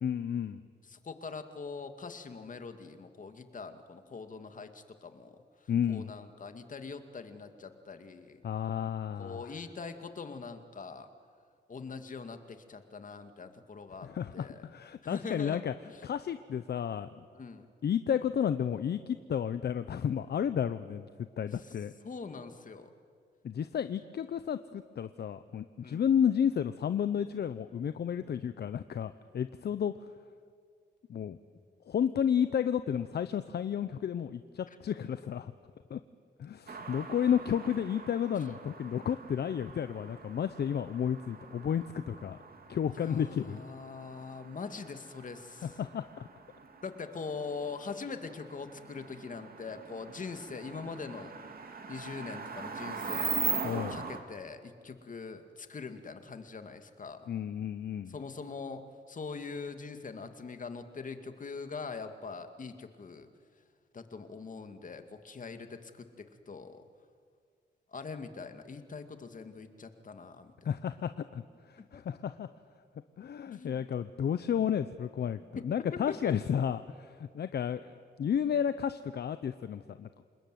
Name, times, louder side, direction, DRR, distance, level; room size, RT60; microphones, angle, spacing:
voice 1, 0.0-0.6 5.7-6.1 8.4-9.5 14.0-15.7 16.0-17.2 17.8-21.1 21.4-21.9 23.4-29.9 31.1-31.4 31.9-35.5 35.9-36.0 36.4-42.4 42.7-43.6 45.6-46.3 53.6-54.0 57.3-58.1 70.6-72.5 73.2-77.9 78.2-80.2, left 8 dB, 65° left, 12 dB, 0.8 m, -32 dB
voice 2, 0.9-8.4 9.2-11.1 11.7-14.7 15.0-16.0 17.3-17.6 21.5-21.7 22.0-22.9 25.8-26.0 43.0-45.8 46.8-51.3 51.9-53.3 53.7-57.3 58.1-63.3 63.9-66.8 67.9-70.7 71.9-72.2 73.5-73.8 75.6-75.7 76.1-76.3, left 4 dB, 45° left, 8 dB, 2.3 m, -43 dB
sound 1, 36.7-54.2, right 5 dB, 55° right, 3.0 m, -41 dB
28.0 x 20.5 x 9.4 m, 2.1 s
cardioid pair, 90°, 18 cm